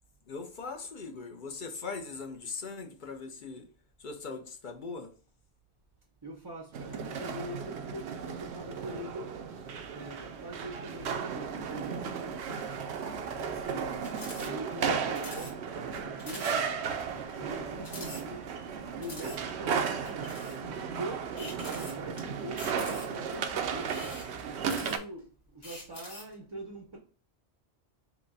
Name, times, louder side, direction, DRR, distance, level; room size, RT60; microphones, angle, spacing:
voice 1, 0.3-3.7 4.0-5.1 13.7-14.0, left 4 dB, 50° left, 0.8 m, -40 dB
voice 2, 6.2-12.8 13.4-14.0 14.4-15.6 15.9-18.6 18.9-24.2 24.5-27.0, right 1 dB, 30° right, 0.5 m, -43 dB
sound 1, 6.7-25.0, right 6 dB, 85° right, 0.9 m, -35 dB
sound 2, 14.0-14.5 14.8-14.9 15.1-15.5 15.9-16.0 16.2-16.6 17.0-17.1 17.8-18.6 19.0-19.4 20.0-20.6 21.4-22.2 22.6-23.3 23.8-25.2 25.6-26.3, left 2 dB, 70° left, 1.8 m, -45 dB
5.9 x 2.2 x 4.0 m
omnidirectional pair, 1.1 m